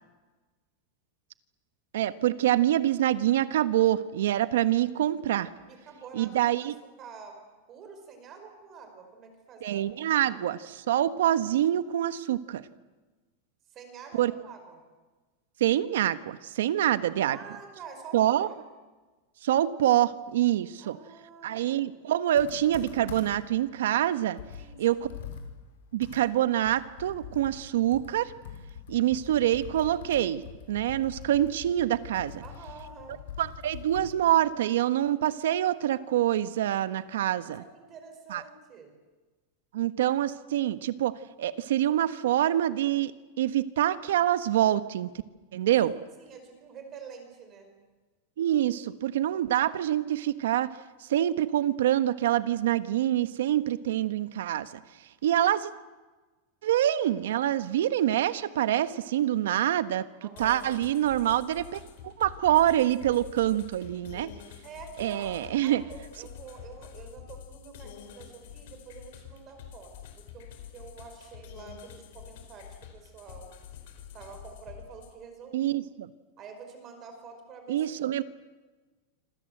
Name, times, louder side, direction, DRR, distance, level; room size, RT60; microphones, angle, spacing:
voice 1, 1.9-5.5 6.1-6.7 9.6-12.6 14.2-14.3 15.6-17.4 18.1-18.5 19.4-21.0 21.4-24.4 24.8-25.1 25.9-28.3 28.9-32.4 33.4-37.6 38.3-38.4 39.7-43.1 43.4-45.1 45.5-45.9 48.4-50.7 51.1-54.7 55.2-55.7 56.6-60.1 60.4-64.3 65.0-65.8 75.5-76.1 77.7-78.2, right 12 dB, 85° right, 13 dB, 1.3 m, -26 dB
voice 2, 5.6-6.3 7.0-7.4 7.7-9.8 10.3-10.4 13.7-14.8 17.2-18.6 20.8-21.8 24.6-25.0 32.4-33.2 37.2-38.9 45.8-45.9 46.2-47.7 60.2-60.7 64.6-73.5 74.1-75.7 76.4-77.8, right 5 dB, 20° right, 6 dB, 5.0 m, -47 dB
Computer keyboard, 22.4-23.5 24.0-24.1 24.4-34.2, left 8 dB, 80° left, 6.3 m, -44 dB
sound 1, 60.4-75.1, left 9 dB, 55° left, 4.7 m, -47 dB
27.0 x 26.5 x 8.0 m, 1.3 s
supercardioid pair, 180°, 0 cm